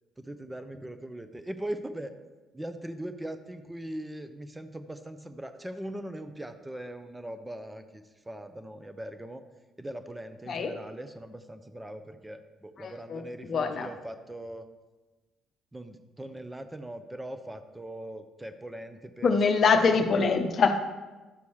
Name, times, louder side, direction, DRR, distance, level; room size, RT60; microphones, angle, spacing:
voice 1, 0.2-2.1 2.5-9.4 9.8-14.7 15.7-19.3 19.7-20.2, right 1 dB, 10° right, 8 dB, 0.8 m, -40 dB
voice 2, 12.8-13.9 19.2-20.8, left 5 dB, 50° left, 6 dB, 0.8 m, -24 dB
11.5 x 6.8 x 3.2 m, 1.2 s
figure-of-eight pair, 45°, 0 cm